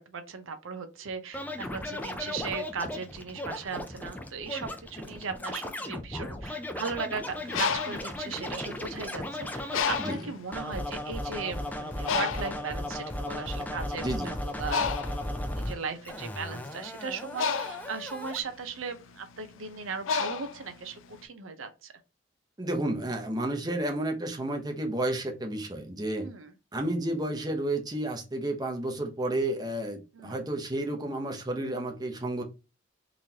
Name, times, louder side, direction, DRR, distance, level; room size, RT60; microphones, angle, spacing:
voice 1, 0.0-7.2 7.6-14.3 14.6-21.9 26.2-26.5 30.1-30.4, right 5 dB, 85° right, 8 dB, 0.7 m, -37 dB
Scratching (performance technique), 1.3-10.1 10.5-15.7 16.0-18.4, left 1 dB, 10° left, 0.4 m, -36 dB
Bird, 7.3-9.2 9.7-10.4 11.1-11.2 11.5-21.2, left 6 dB, 80° left, 0.4 m, -33 dB
voice 2, 14.0-14.3 22.6-26.3 26.7-32.4, right 1 dB, 20° right, 3 dB, 0.7 m, -31 dB
3.9 x 3.1 x 2.8 m, 0.28 s
head